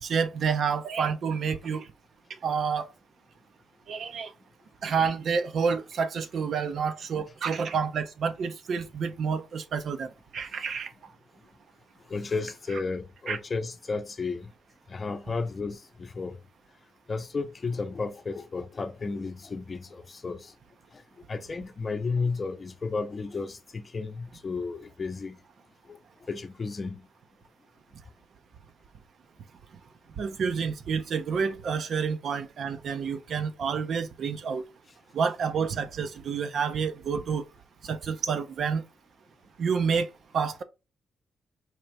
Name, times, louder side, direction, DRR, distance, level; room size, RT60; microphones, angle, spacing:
voice 1, 0.0-1.9 2.4-2.9 3.9-4.3 4.8-10.9 13.3-13.4 30.2-34.6 35.1-37.4 37.8-38.8 39.6-40.6, right 6 dB, 65° right, 0.6 m, -29 dB
voice 2, 12.1-14.5 14.9-16.4 17.1-20.5 21.3-25.4 25.9-26.0 26.3-27.1, left 4 dB, 40° left, 0.6 m, -33 dB
4.3 x 2.5 x 3.2 m
supercardioid pair, 60°, 0 cm